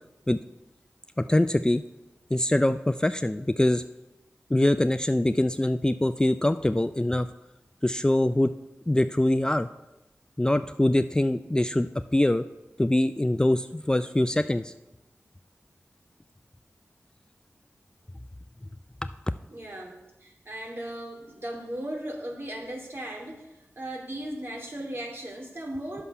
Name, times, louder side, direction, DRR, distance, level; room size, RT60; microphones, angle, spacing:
voice 1, 1.2-1.8 2.3-3.8 4.5-7.3 7.8-8.5 8.9-9.7 10.4-12.5 12.8-14.7 19.0-19.1, left 1 dB, 15° left, 10 dB, 0.4 m, -23 dB
voice 2, 19.5-23.5 23.8-26.0, right 1 dB, 50° right, 0 dB, 2.7 m, -37 dB
10.0 x 6.9 x 5.5 m, 0.99 s
cardioid pair, 45°, 5 cm